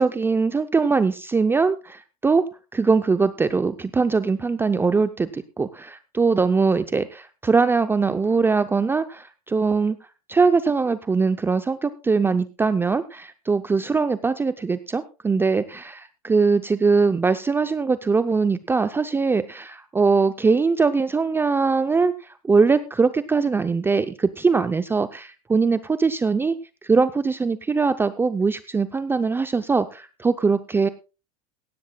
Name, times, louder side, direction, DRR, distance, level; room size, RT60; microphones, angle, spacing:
voice 1, 0.0-2.4 2.7-10.0 10.3-26.5 26.8-30.9, right 4 dB, 10° right, 11 dB, 0.6 m, -21 dB
16.5 x 14.5 x 2.3 m, 0.31 s
supercardioid pair, 120°, 19 cm